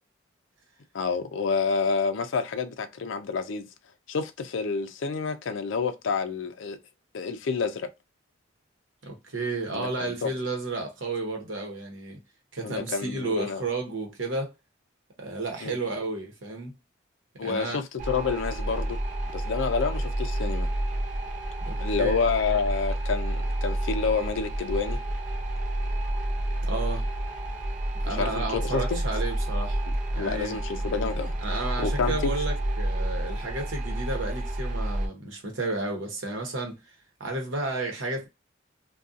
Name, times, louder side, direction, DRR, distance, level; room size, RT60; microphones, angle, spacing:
voice 1, 0.9-3.7 4.1-6.8 7.1-7.9 9.7-10.3 12.6-13.6 15.6-15.8 17.4-19.0 19.3-20.7 21.8-25.0 28.1-29.0 30.2-31.3 31.8-32.3, left 5 dB, 75° left, 0.4 m, -29 dB
voice 2, 9.0-12.2 12.5-14.5 15.2-16.7 17.4-17.8 21.7-22.2 26.6-27.1 28.0-29.8 30.1-30.6 31.4-36.8 37.2-38.3, right 2 dB, 80° right, 0.9 m, -32 dB
sound 1, 18.0-35.1, right 1 dB, 45° right, 0.5 m, -29 dB
2.6 x 2.3 x 2.4 m
head